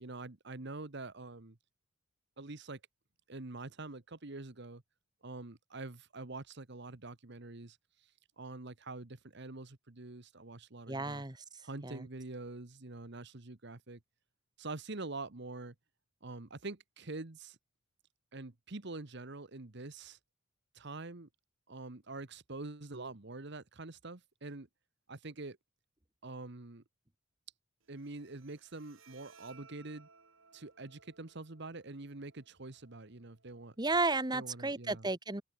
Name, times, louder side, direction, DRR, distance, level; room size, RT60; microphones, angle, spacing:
voice 1, 0.0-1.6 2.4-2.8 3.3-4.8 5.2-8.1 8.4-11.2 11.6-14.0 14.6-15.7 16.2-17.6 18.3-20.2 20.7-21.3 21.7-24.7 25.1-25.6 26.2-26.8 27.9-30.1 30.5-33.7 34.3-35.1, right 2 dB, 55° right, 1.3 m, -45 dB
voice 2, 10.9-11.4 11.8-12.1 33.8-35.4, right 3 dB, 20° right, 1.6 m, -33 dB
Bowed string instrument, 27.8-34.8, right 5 dB, 75° right, 7.9 m, -64 dB
head